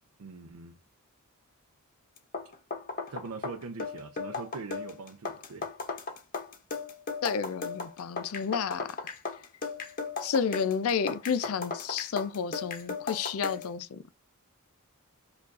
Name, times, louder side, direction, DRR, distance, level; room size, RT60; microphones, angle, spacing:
voice 1, 0.2-0.8 3.1-5.7, right 4 dB, 85° right, 0.5 m, -42 dB
sound 1, 2.2-13.7, left 4 dB, 40° left, 0.7 m, -36 dB
voice 2, 7.2-9.0 10.2-14.0, left 6 dB, 75° left, 0.4 m, -31 dB
4.6 x 2.4 x 2.4 m
head